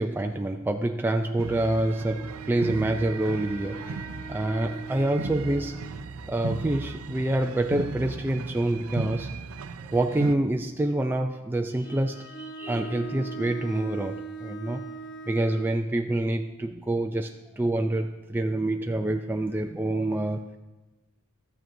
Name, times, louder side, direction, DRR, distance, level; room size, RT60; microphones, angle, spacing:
voice 1, 0.0-5.9 6.3-9.3 9.8-14.8 15.3-20.6, right 1 dB, 10° right, 4 dB, 0.3 m, -27 dB
sound 1, 1.4-10.3, right 4 dB, 85° right, 0.5 m, -36 dB
Wind instrument woodwind instrument, 1.8-6.1, right 4 dB, 65° left, 3.5 m, -42 dB
Bowed string instrument, 11.8-15.8, right 4 dB, 45° left, 1.3 m, -39 dB
14.0 x 9.2 x 2.6 m, 1.1 s
head